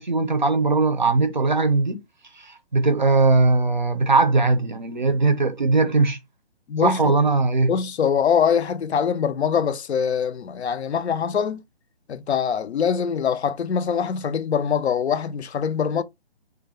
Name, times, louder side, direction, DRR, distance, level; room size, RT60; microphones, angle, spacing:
voice 1, 0.0-2.0 2.4-6.2 6.8-7.7, right 3 dB, 45° right, 0.5 m, -20 dB
voice 2, 6.7-7.2 7.7-11.6 12.1-16.0, left 7 dB, 80° left, 0.5 m, -23 dB
2.4 x 2.2 x 3.2 m
hypercardioid pair, 180°, 32 cm